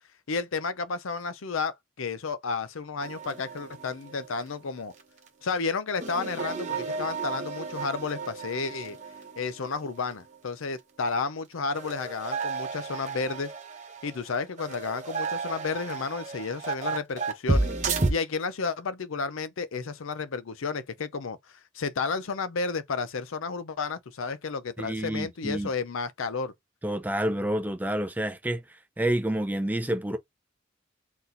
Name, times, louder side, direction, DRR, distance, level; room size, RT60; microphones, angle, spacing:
voice 1, 0.3-4.9 5.4-9.0 9.4-13.5 14.0-17.7 18.1-26.5, left 4 dB, 85° left, 0.6 m, -32 dB
sound 1, 3.0-4.5 4.8-5.0 5.3-5.4 6.0-10.0 10.3-10.4 11.7-18.1, right 3 dB, 35° right, 1.1 m, -32 dB
voice 2, 24.8-25.7 26.8-30.2, right 1 dB, 10° right, 0.5 m, -29 dB
4.1 x 4.0 x 2.6 m
head